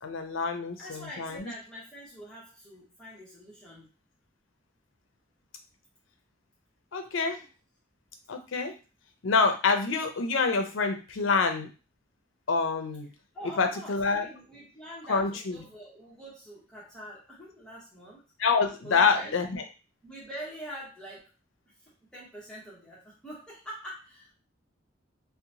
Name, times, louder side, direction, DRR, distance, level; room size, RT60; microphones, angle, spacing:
voice 1, 0.0-1.5 6.9-7.4 8.3-8.7 9.2-11.7 12.5-13.1 13.6-14.3 15.1-15.6 18.4-19.6, left 4 dB, 90° left, 6 dB, 0.5 m, -26 dB
voice 2, 0.8-3.9 13.3-18.2 18.8-19.4 20.0-21.2 22.1-24.3, equal, 5° left, -6 dB, 0.8 m, -44 dB
2.8 x 2.1 x 2.6 m, 0.33 s
head